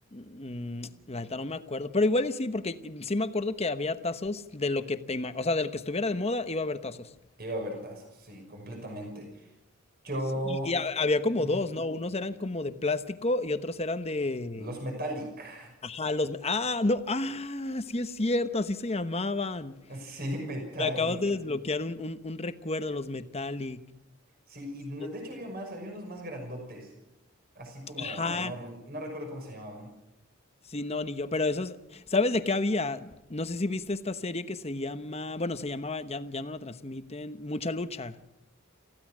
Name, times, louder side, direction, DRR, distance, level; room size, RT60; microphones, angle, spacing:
voice 1, 0.1-7.1 10.5-14.7 15.8-19.8 20.8-23.8 25.0-25.1 28.0-28.5 30.7-38.2, left 2 dB, 30° left, 1.0 m, -30 dB
voice 2, 7.4-9.5 10.0-10.7 11.4-11.6 14.6-15.7 19.9-21.2 24.5-26.9 27.6-29.9, equal, 45° right, 5.7 m, -37 dB
28.5 x 15.5 x 6.2 m
head